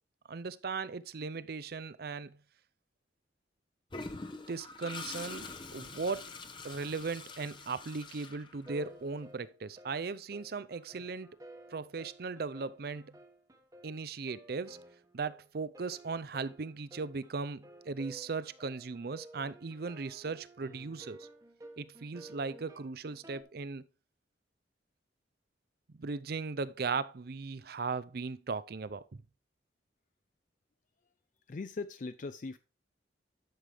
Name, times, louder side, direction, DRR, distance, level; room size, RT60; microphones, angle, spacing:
voice 1, 0.3-2.4 4.5-6.3 6.6-11.3 11.7-13.2 13.8-14.8 15.1-21.3 21.8-23.9 25.9-29.0, right 4 dB, 55° right, 0.5 m, -38 dB
Toilet flush, 3.9-9.0, left 3 dB, 25° left, 0.8 m, -45 dB
sound 1, 8.6-23.4, right 1 dB, 20° right, 1.1 m, -54 dB
voice 2, 31.5-32.6, left 3 dB, 45° left, 0.4 m, -40 dB
11.0 x 6.6 x 3.4 m
head